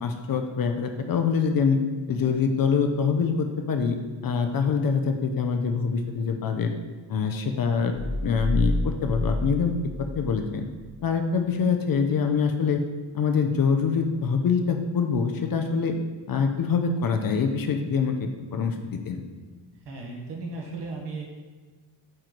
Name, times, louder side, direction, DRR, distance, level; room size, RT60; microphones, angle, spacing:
voice 1, 0.0-1.8 2.1-4.0 4.2-6.7 7.1-7.9 8.2-9.7 10.0-10.6 11.0-12.8 13.1-15.9 16.3-19.2, left 5 dB, 50° left, 5 dB, 0.6 m, -25 dB
sound 1, 7.9-10.9, left 1 dB, 70° left, 1.7 m, -29 dB
voice 2, 19.9-21.3, right 3 dB, 65° right, -1 dB, 1.3 m, -35 dB
8.7 x 3.1 x 3.9 m, 1.4 s
wide cardioid pair, 165°, 46 cm